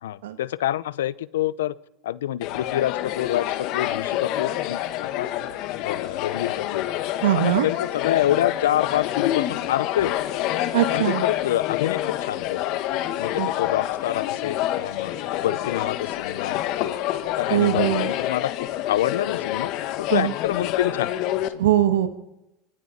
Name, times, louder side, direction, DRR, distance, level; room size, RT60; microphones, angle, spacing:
voice 1, 0.0-1.8 2.0-5.3 5.8-6.8 7.3-10.3 10.9-12.8 13.2-15.1 15.4-17.0 17.4-19.7 20.0-21.6, left 12 dB, 90° left, 20 dB, 0.7 m, -27 dB
sound 1, 2.4-21.5, left 13 dB, 60° left, 1.7 m, -27 dB
voice 2, 7.2-7.7 10.7-11.2 13.4-13.5 17.5-18.1 20.1-20.3 21.6-22.1, right 12 dB, 85° right, 9 dB, 1.7 m, -21 dB
25.5 x 25.0 x 4.3 m, 0.94 s
supercardioid pair, 105°, 0 cm